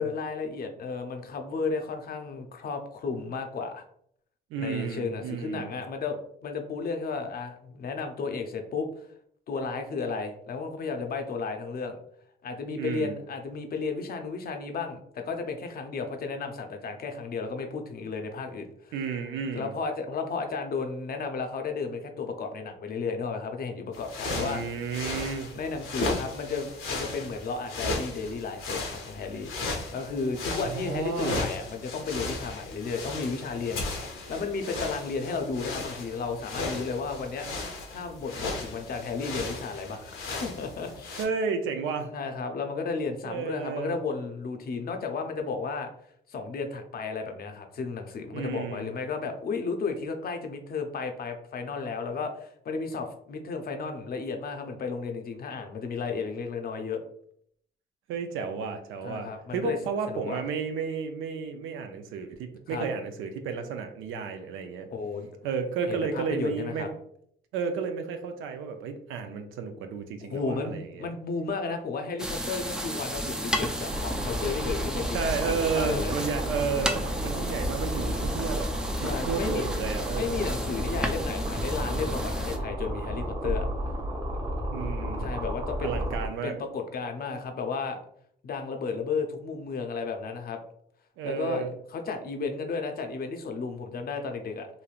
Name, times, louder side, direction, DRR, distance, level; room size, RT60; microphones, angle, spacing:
voice 1, 0.0-3.8 4.6-9.1 9.5-12.0 12.4-18.9 19.5-24.9 25.6-29.5 29.9-37.5 37.9-41.2 42.1-45.9 46.3-57.0 59.0-59.8 60.1-60.4 62.7-62.9 64.9-65.3 65.8-66.9 70.3-76.1 79.0-79.7 80.1-83.7 85.2-85.9 86.4-88.0 88.4-90.6 91.2-94.7, left 4 dB, 50° left, 5 dB, 0.5 m, -33 dB
voice 2, 4.5-5.7 12.8-13.2 18.9-19.7 24.3-25.5 30.5-31.4 41.2-42.1 43.2-44.0 48.3-48.9 58.1-64.9 65.4-67.0 67.5-71.1 75.1-78.7 79.0-80.5 84.7-85.3 85.8-86.5 91.2-91.7, right 5 dB, 90° right, 6 dB, 0.5 m, -32 dB
sound 1, 23.9-41.2, left 2 dB, 80° left, 0.7 m, -36 dB
sound 2, 72.2-82.6, equal, 5° right, 0.3 m, -33 dB
sound 3, 73.9-86.3, equal, 20° right, 0.7 m, -32 dB
3.1 x 2.6 x 2.4 m, 0.68 s
cardioid pair, 90°, 20 cm